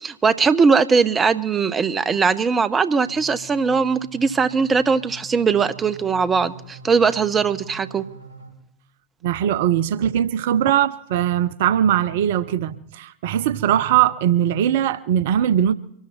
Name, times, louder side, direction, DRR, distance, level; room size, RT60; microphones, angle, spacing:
voice 1, 0.0-8.0, right 5 dB, 20° right, 0.8 m, -20 dB
sound 1, 3.0-8.5, equal, 80° left, 6.0 m, -43 dB
voice 2, 9.2-15.7, right 10 dB, 55° right, 0.6 m, -20 dB
24.0 x 13.0 x 4.3 m
figure-of-eight pair, 90°, 0 cm